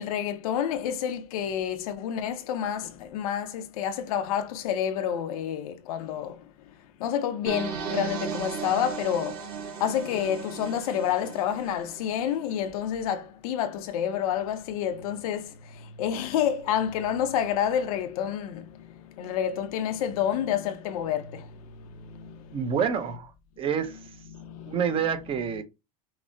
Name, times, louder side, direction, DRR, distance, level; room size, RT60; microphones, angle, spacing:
voice 1, 0.0-22.7 24.3-25.1, left 9 dB, 90° left, 0.7 m, -29 dB
sound 1, 7.5-12.4, right 6 dB, 90° right, 1.1 m, -36 dB
voice 2, 22.5-23.3 23.6-24.0 24.7-25.6, right 7 dB, 30° right, 0.6 m, -27 dB
5.9 x 2.1 x 2.6 m
supercardioid pair, 140°, 18 cm